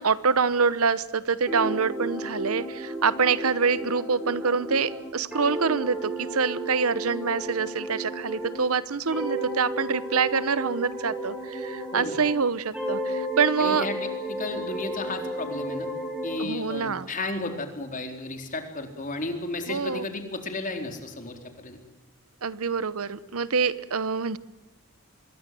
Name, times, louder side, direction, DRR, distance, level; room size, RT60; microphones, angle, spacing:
voice 1, 0.0-13.9 16.4-17.1 19.7-20.1 22.4-24.4, right 5 dB, 75° right, 17 dB, 1.0 m, -26 dB
sound 1, 1.5-8.7 9.1-12.4 12.7-16.4, right 1 dB, 5° right, 6.2 m, -33 dB
voice 2, 13.6-15.9 16.2-21.8, left 2 dB, 35° left, 5 dB, 4.0 m, -33 dB
26.0 x 22.0 x 7.7 m, 1.0 s
head